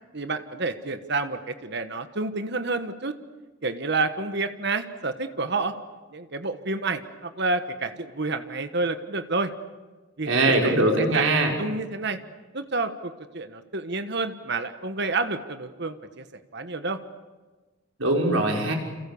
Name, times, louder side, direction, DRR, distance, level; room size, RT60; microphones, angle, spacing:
voice 1, 0.1-3.2 3.6-5.7 6.1-9.5 10.2-10.3 10.6-12.2 12.5-16.2 16.5-17.0, right 3 dB, 55° right, 9 dB, 1.4 m, -29 dB
voice 2, 10.3-11.5 18.0-18.7, right 2 dB, 90° right, 1 dB, 6.1 m, -21 dB
29.5 x 28.5 x 7.1 m, 1.3 s
head